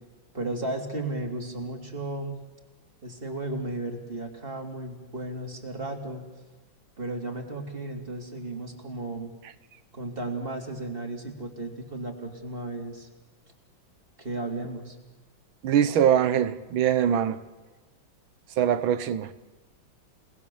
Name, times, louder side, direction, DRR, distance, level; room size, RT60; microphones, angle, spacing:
voice 1, 0.3-2.4 3.0-6.2 7.0-9.3 9.9-13.1 14.2-15.0, right 2 dB, 25° right, 3.3 m, -34 dB
voice 2, 15.6-17.5 18.6-19.3, right 9 dB, 75° right, 1.7 m, -23 dB
29.0 x 20.0 x 7.1 m
omnidirectional pair, 2.2 m